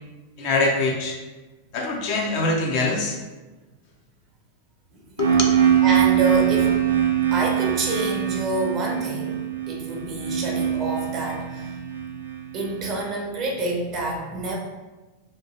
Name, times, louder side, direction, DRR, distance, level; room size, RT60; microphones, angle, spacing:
voice 1, 0.4-1.2 1.7-3.2 5.2-5.4, left 2 dB, 45° left, 0 dB, 0.5 m, -23 dB
sound 1, 5.2-13.0, right 9 dB, 80° right, 0.4 m, -23 dB
voice 2, 5.8-6.8 7.3-11.7 12.5-14.6, right 2 dB, 35° right, -1 dB, 0.7 m, -27 dB
2.9 x 2.5 x 2.7 m, 1.2 s
figure-of-eight pair, 90°, 0 cm